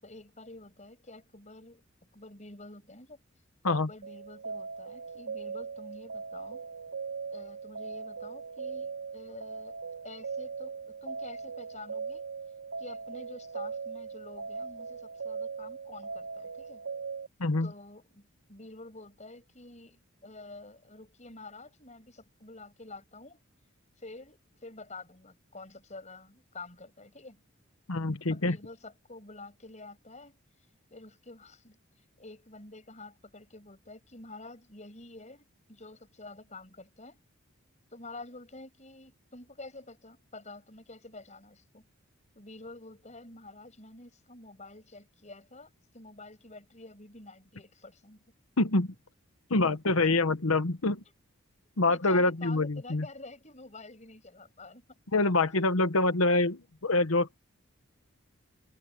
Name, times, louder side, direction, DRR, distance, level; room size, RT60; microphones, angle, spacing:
voice 1, 0.0-1.8 2.1-3.2 3.6-6.6 7.3-9.8 10.0-12.2 12.8-16.8 17.6-23.4 24.0-27.4 28.3-30.4 30.9-31.8 32.2-35.4 35.7-37.2 37.9-41.9 42.3-48.2 51.9-55.0, left 2 dB, 35° left, 6.7 m, -48 dB
sound 1, 4.0-17.3, right 5 dB, 80° right, 3.1 m, -39 dB
voice 2, 27.9-28.6 48.6-48.9 49.5-51.0 51.8-53.0 55.1-57.4, left 2 dB, 85° left, 1.2 m, -26 dB
head